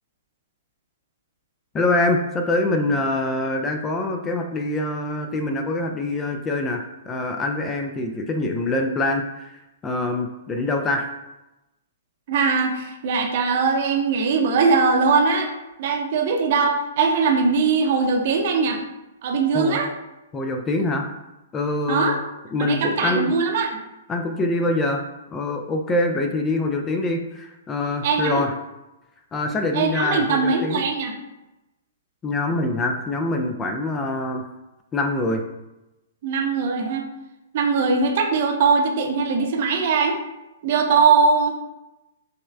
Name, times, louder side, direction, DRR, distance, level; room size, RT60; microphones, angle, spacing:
voice 1, 1.7-11.1 19.5-19.8 20.3-21.1 21.5-22.2 22.5-23.3 24.1-25.0 25.3-28.5 29.3-30.8 32.2-34.5 34.9-35.4, left 2 dB, 20° left, 4 dB, 0.4 m, -24 dB
voice 2, 12.3-15.5 15.8-18.8 19.2-19.9 21.9-22.2 22.6-23.7 28.0-28.4 29.7-31.1 36.2-37.1 37.5-40.2 40.6-41.6, right 4 dB, 45° right, 3 dB, 0.7 m, -20 dB
5.3 x 3.1 x 2.4 m, 0.97 s
figure-of-eight pair, 115°, 0 cm